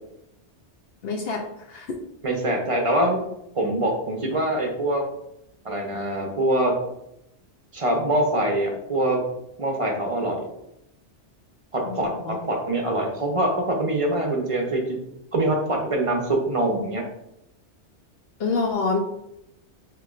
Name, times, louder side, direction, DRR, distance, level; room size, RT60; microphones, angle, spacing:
voice 1, 1.0-1.4 1.7-2.0 11.8-12.4 18.4-19.0, left 4 dB, 65° left, 2 dB, 0.7 m, -26 dB
voice 2, 2.2-3.2 3.5-5.0 5.6-6.8 7.7-9.2 9.6-10.5 11.7-12.1 12.5-15.0 15.3-17.0, right 1 dB, 35° right, 1 dB, 0.6 m, -24 dB
5.9 x 3.0 x 2.4 m, 0.82 s
omnidirectional pair, 1.2 m